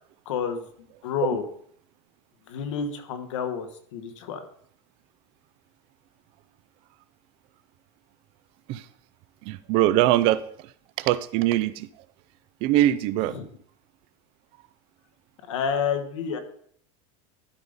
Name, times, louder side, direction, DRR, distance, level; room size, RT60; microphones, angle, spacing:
voice 1, 0.2-1.5 2.5-4.4 13.3-13.5 15.5-16.4, left 7 dB, 90° left, 7 dB, 1.4 m, -29 dB
voice 2, 9.5-10.4 11.0-11.9 12.6-13.3, right 14 dB, 35° right, 15 dB, 0.4 m, -22 dB
12.5 x 5.1 x 3.9 m, 0.62 s
supercardioid pair, 170°, 15 cm